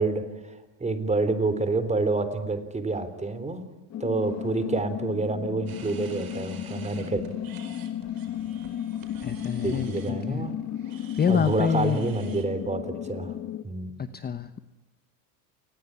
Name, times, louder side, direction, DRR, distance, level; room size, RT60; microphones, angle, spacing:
voice 1, 0.0-3.6 4.0-7.2 9.6-10.5 11.3-13.3 13.6-13.9, right 3 dB, 15° right, 11 dB, 3.6 m, -28 dB
sound 1, 3.9-13.6, left 10 dB, 35° left, 1.4 m, -34 dB
sound 2, 5.7-12.4, right 8 dB, 45° right, 4.8 m, -49 dB
voice 2, 9.2-10.4 11.2-12.1 14.0-14.6, left 7 dB, 20° left, 11 dB, 1.0 m, -27 dB
29.0 x 20.5 x 9.9 m, 1.0 s
supercardioid pair, 120°, 47 cm